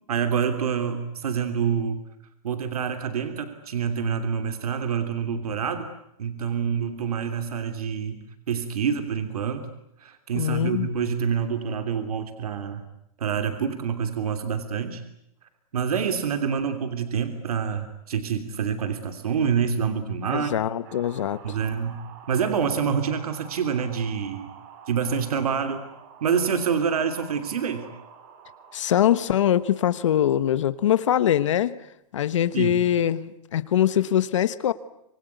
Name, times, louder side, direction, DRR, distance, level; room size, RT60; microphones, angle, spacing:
voice 1, 0.1-2.0 2.4-5.9 6.2-9.7 10.0-12.8 13.2-15.0 15.7-20.5 21.4-22.0 22.3-24.5 24.9-25.8 26.2-27.9 32.5-32.8, right 7 dB, 85° right, 8 dB, 3.1 m, -27 dB
voice 2, 10.3-10.9 20.3-21.4 28.7-31.8 32.1-34.7, left 11 dB, 55° left, 15 dB, 1.3 m, -23 dB
sound 1, 20.8-31.1, right 8 dB, 30° right, 3.0 m, -48 dB
26.5 x 24.0 x 9.4 m, 0.77 s
hypercardioid pair, 180°, 19 cm